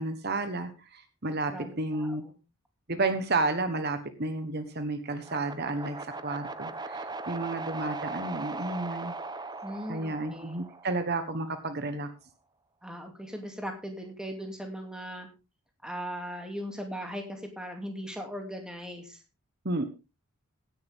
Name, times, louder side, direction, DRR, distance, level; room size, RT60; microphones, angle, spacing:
voice 1, 0.0-2.2 2.9-9.1 9.9-12.1 19.6-19.8, right 2 dB, 50° right, 9 dB, 1.3 m, -31 dB
voice 2, 1.5-2.4 9.6-10.6 12.8-15.3 15.8-19.2, equal, 5° right, 3 dB, 2.6 m, -39 dB
sound 1, 5.2-11.4, right 3 dB, 20° right, 0.9 m, -39 dB
16.5 x 10.5 x 3.6 m, 0.29 s
head